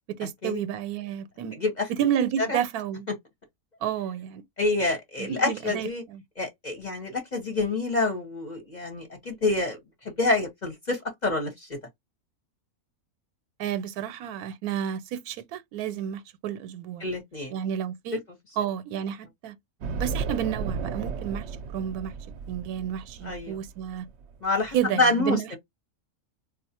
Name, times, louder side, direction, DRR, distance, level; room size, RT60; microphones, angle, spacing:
voice 1, 0.2-1.6 1.9-3.1 3.8-4.4 5.2-6.2 13.6-17.1 17.5-18.2 18.6-19.6 19.9-22.1 22.5-24.1 24.7-25.6, right 9 dB, 90° right, 1.1 m, -31 dB
voice 2, 1.6-1.9 2.4-2.6 4.6-6.0 6.4-9.8 10.0-11.8 17.0-17.5 23.2-23.6 24.4-25.6, left 2 dB, 40° left, 0.8 m, -27 dB
sound 1, 19.8-24.7, right 5 dB, 65° right, 0.7 m, -34 dB
3.9 x 2.3 x 2.7 m
omnidirectional pair, 1.5 m